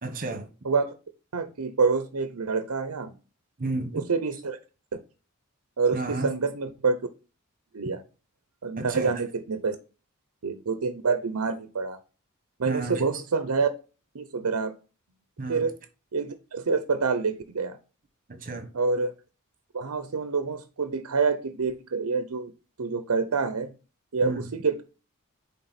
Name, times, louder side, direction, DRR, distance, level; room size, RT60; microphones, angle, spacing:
voice 1, 0.0-0.5 3.6-4.1 5.9-6.3 8.8-9.2 12.6-13.2 15.4-15.7 18.3-18.7 24.2-24.5, right 2 dB, 40° right, 1.3 m, -32 dB
voice 2, 1.3-3.1 3.9-4.6 5.8-7.0 7.7-8.0 8.6-9.8 10.4-12.0 12.6-13.7 14.1-14.7 15.5-15.7 16.1-17.8 18.7-19.1 19.7-22.5 22.8-23.7 24.1-24.8, right 4 dB, 80° right, 0.7 m, -27 dB
8.7 x 3.6 x 4.2 m
head